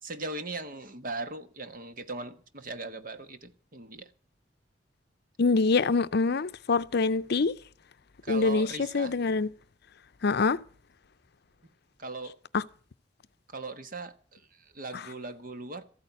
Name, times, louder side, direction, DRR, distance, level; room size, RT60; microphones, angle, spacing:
voice 1, 0.0-4.1 8.2-9.1 12.0-12.4 13.5-15.8, right 3 dB, 50° right, 1.4 m, -39 dB
voice 2, 5.4-7.5 8.3-9.5 10.2-10.6 12.5-12.6, left 4 dB, 60° left, 0.6 m, -25 dB
14.0 x 8.9 x 8.2 m
head